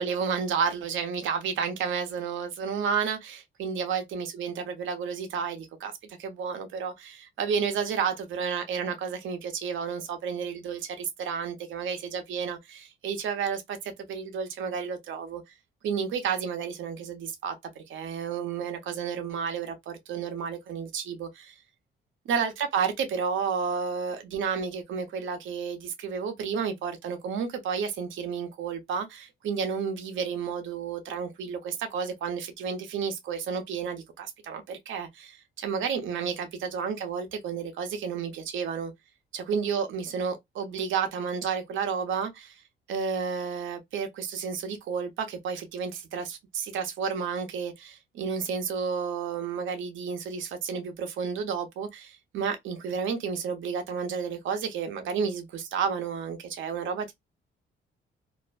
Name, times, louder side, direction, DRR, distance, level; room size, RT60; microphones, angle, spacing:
voice 1, 0.0-5.9 6.2-15.4 15.8-21.5 22.3-38.9 39.3-42.6 42.9-57.1, right 6 dB, 75° right, 0.8 m, -31 dB
2.5 x 2.1 x 2.3 m
cardioid pair, 90°, 20 cm